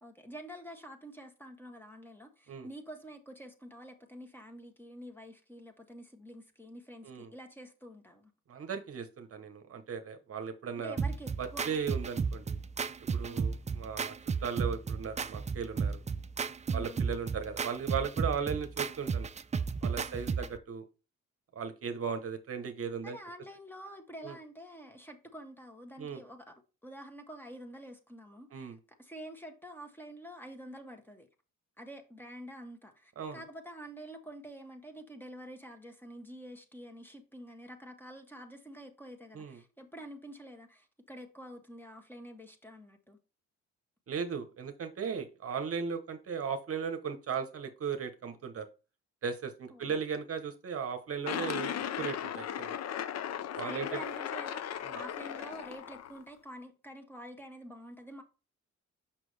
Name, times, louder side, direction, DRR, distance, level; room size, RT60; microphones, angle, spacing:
voice 1, 0.0-8.3 10.7-11.7 13.2-13.5 16.7-17.1 20.1-20.5 23.0-26.5 26.8-31.3 31.8-43.2 49.7-50.0 53.6-58.2, equal, 5° left, 1.5 m, -48 dB
voice 2, 8.5-11.0 11.4-12.6 13.1-14.1 14.4-16.0 16.7-19.3 19.8-20.8 21.5-23.2 24.2-24.4 26.0-26.2 28.5-28.8 33.2-33.4 39.3-39.6 44.1-48.7 49.2-52.8 53.5-53.9 54.8-55.0, right 6 dB, 50° right, 1.0 m, -37 dB
sound 1, 11.0-20.6, right 5 dB, 25° right, 0.5 m, -33 dB
sound 2, 51.2-56.2, left 9 dB, 60° left, 0.7 m, -37 dB
6.0 x 5.9 x 3.3 m
cardioid pair, 90°, 30 cm